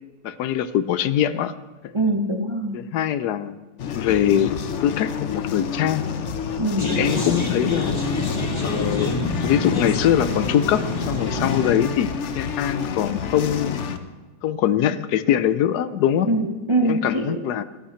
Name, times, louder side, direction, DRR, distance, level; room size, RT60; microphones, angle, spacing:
voice 1, 0.2-1.6 1.8-1.9 2.7-3.6 3.9-6.0 6.8-8.0 8.6-13.8 14.4-16.3 16.8-17.6, left 10 dB, 80° left, 14 dB, 1.1 m, -23 dB
voice 2, 1.9-2.8 6.6-6.9 16.3-17.4, right 2 dB, 25° right, 3 dB, 0.7 m, -23 dB
sound 1, 3.8-14.0, left 7 dB, 55° left, 0.9 m, -29 dB
sound 2, 6.8-11.8, left 2 dB, 15° left, 1.7 m, -27 dB
13.5 x 13.0 x 4.4 m, 1.2 s
omnidirectional pair, 1.7 m